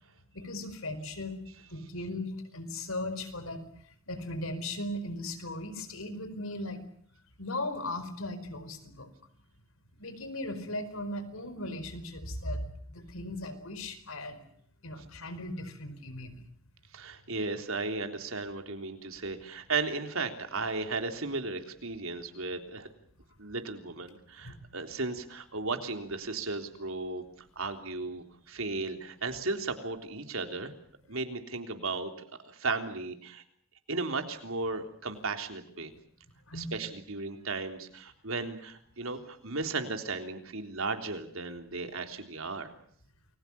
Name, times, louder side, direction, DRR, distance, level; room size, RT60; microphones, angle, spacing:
voice 1, 0.3-1.4 1.7-3.7 4.1-6.8 7.4-9.1 10.0-14.4 14.8-16.4 24.4-24.7 36.5-36.8, left 1 dB, 80° left, 11 dB, 4.7 m, -37 dB
voice 2, 16.9-22.9 23.4-30.7 31.1-32.1 32.4-33.4 33.9-35.9 36.5-42.7, right 3 dB, 80° right, 6 dB, 3.5 m, -35 dB
29.0 x 22.0 x 7.0 m, 0.64 s
head